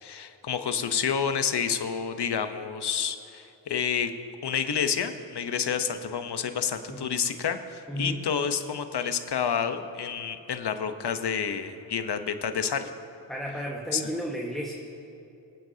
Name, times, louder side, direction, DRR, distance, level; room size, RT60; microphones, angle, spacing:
voice 1, 0.0-4.1 4.4-12.9 13.9-14.0, left 7 dB, 60° left, 8 dB, 1.0 m, -29 dB
voice 2, 7.9-8.2 13.3-14.7, equal, ahead, -2 dB, 1.5 m, -33 dB
24.0 x 9.2 x 2.8 m, 2.7 s
cardioid pair, 50°, 45 cm